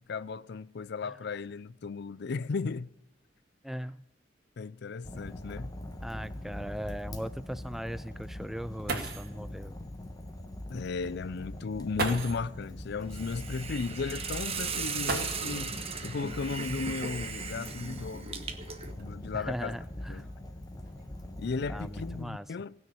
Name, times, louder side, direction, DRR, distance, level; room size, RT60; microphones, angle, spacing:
voice 1, 0.1-2.9 4.6-5.7 10.7-18.4 19.0-19.8 20.1-20.3 21.4-22.7, left 4 dB, 60° left, 0.4 m, -35 dB
voice 2, 3.6-4.0 6.0-9.8 19.3-20.3 21.7-22.5, equal, ahead, 0.4 m, -39 dB
Fire, 5.0-22.2, left 1 dB, 20° left, 1.2 m, -42 dB
sound 1, 5.0-5.1 5.5-5.6 6.2-6.3 8.5-8.6 8.9-9.4 10.7-10.8 11.9-12.5 15.0-15.8 17.1-17.2 18.0-19.4 20.1-20.5 20.8-21.2, right 3 dB, 55° right, 2.1 m, -36 dB
Hiss, 13.1-18.9, right 5 dB, 30° right, 1.2 m, -37 dB
19.0 x 6.4 x 8.4 m
head